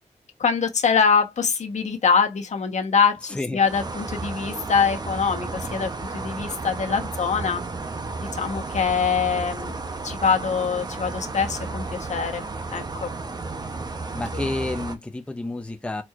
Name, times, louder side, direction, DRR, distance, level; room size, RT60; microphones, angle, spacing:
voice 1, 0.4-7.6 8.2-9.7 10.0-12.4 12.7-13.1 14.3-14.5, left 6 dB, 70° left, 1.2 m, -24 dB
sound 1, 3.6-15.0, right 3 dB, 35° right, 0.8 m, -33 dB
voice 2, 14.1-16.0, left 2 dB, 10° left, 0.6 m, -30 dB
4.4 x 4.3 x 2.5 m
wide cardioid pair, 135°, 12 cm